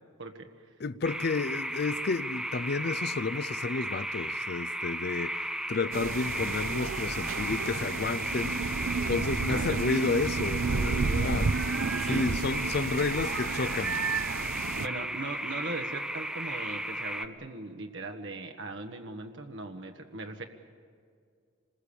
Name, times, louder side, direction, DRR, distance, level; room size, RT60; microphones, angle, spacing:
voice 1, 0.2-0.5 9.5-9.8 12.0-12.4 14.8-20.4, right 2 dB, 65° right, 1.4 m, -39 dB
voice 2, 0.8-14.1 14.3-14.4, left 4 dB, 55° left, 0.5 m, -31 dB
sound 1, 1.0-17.3, right 1 dB, 5° right, 0.6 m, -35 dB
sound 2, 5.9-14.9, right 4 dB, 85° right, 0.6 m, -32 dB
26.5 x 20.5 x 7.1 m
head